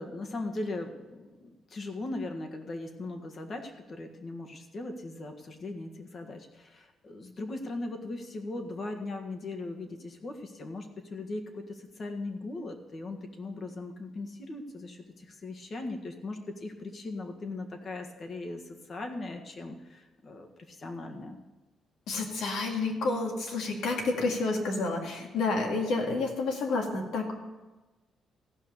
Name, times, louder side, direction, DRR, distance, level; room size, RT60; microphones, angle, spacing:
voice 1, 0.0-21.4, left 2 dB, 45° left, 4 dB, 1.6 m, -39 dB
voice 2, 22.1-27.3, left 3 dB, 85° left, 1 dB, 2.0 m, -29 dB
15.0 x 5.7 x 6.7 m, 1.2 s
cardioid pair, 90°, 0 cm